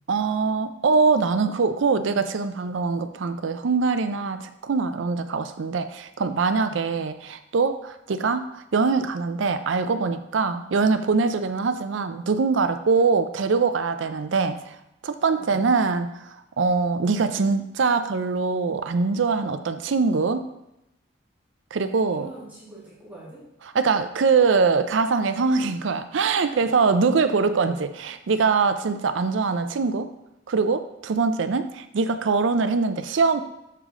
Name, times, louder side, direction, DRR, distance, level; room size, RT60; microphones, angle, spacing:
voice 1, 0.1-14.8 15.0-20.4 21.7-22.3 23.7-30.1 30.5-33.4, right 4 dB, 75° right, 10 dB, 0.5 m, -23 dB
voice 2, 6.6-6.9 15.3-15.6 21.8-23.4 25.6-25.7 26.5-26.9, right 1 dB, 10° right, -8 dB, 1.9 m, -44 dB
6.7 x 5.0 x 3.7 m, 0.86 s
head